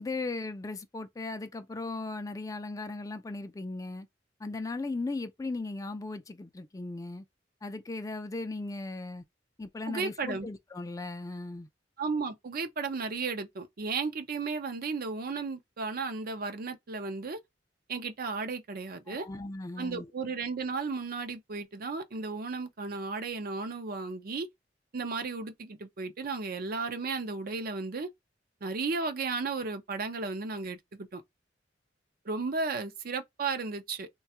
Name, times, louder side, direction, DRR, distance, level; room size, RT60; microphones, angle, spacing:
voice 1, 0.0-4.1 4.4-7.2 7.6-9.2 9.6-11.7 19.1-20.1, left 3 dB, 20° left, 0.3 m, -37 dB
voice 2, 9.9-10.5 12.0-17.4 17.9-19.3 19.8-24.5 24.9-28.1 28.6-31.2 32.2-34.1, right 4 dB, 55° right, 0.5 m, -34 dB
3.2 x 2.3 x 2.8 m
head